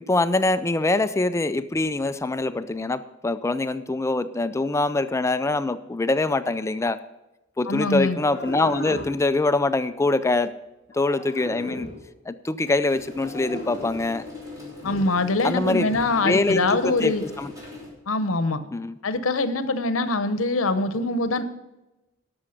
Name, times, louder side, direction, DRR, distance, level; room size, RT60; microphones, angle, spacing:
voice 1, 0.1-7.0 7.6-10.5 10.9-11.9 12.3-14.2 15.4-15.9 16.2-17.5 18.7-19.0, left 2 dB, 15° left, 12 dB, 0.4 m, -24 dB
voice 2, 7.7-8.2 14.8-17.2 18.1-18.6 19.0-21.4, left 2 dB, 85° left, 11 dB, 0.9 m, -23 dB
sound 1, 7.9-9.2 10.9-12.0 13.2-14.1 14.8-15.1 15.9-16.1, left 1 dB, 50° left, 2.5 m, -37 dB
sound 2, 12.9-17.9, left 3 dB, 15° right, 3.2 m, -41 dB
12.5 x 6.1 x 5.8 m, 0.99 s
head